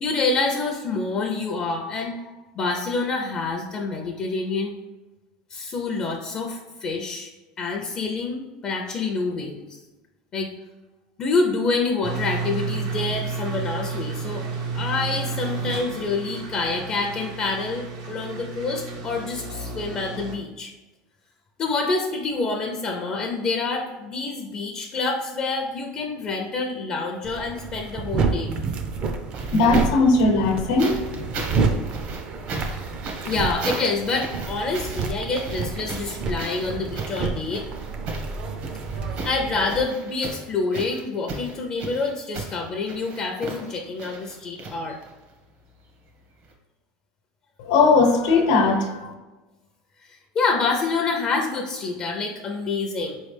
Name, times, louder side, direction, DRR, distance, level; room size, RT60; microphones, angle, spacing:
voice 1, 0.0-4.8 5.5-7.3 7.6-9.8 10.3-10.5 11.2-14.4 14.7-20.7 21.6-28.5 33.2-37.6 39.2-45.0 50.1-53.2, left 3 dB, 30° left, 2 dB, 0.4 m, -27 dB
sound 1, 12.0-20.4, right 4 dB, 90° right, 1.0 m, -31 dB
sound 2, 27.2-39.8, right 4 dB, 35° right, 0.5 m, -29 dB
sound 3, 28.4-30.1 30.8-45.3 46.4-46.5, right 3 dB, 55° right, 0.9 m, -36 dB
voice 2, 29.5-31.0 47.6-49.1, left 3 dB, 85° left, 3 dB, 0.9 m, -19 dB
4.5 x 3.1 x 3.3 m, 1.1 s
supercardioid pair, 140°, 3 cm